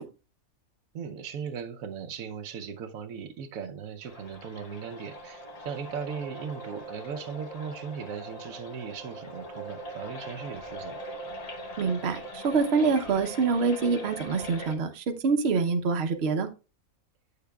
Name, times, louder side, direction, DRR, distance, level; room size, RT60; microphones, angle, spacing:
voice 1, 0.9-11.0, right 6 dB, 80° right, 1.1 m, -38 dB
sound 1, 4.0-14.8, right 1 dB, 35° left, 0.8 m, -41 dB
voice 2, 11.8-16.5, right 4 dB, 55° right, 0.9 m, -26 dB
9.3 x 6.8 x 2.3 m
omnidirectional pair, 1.4 m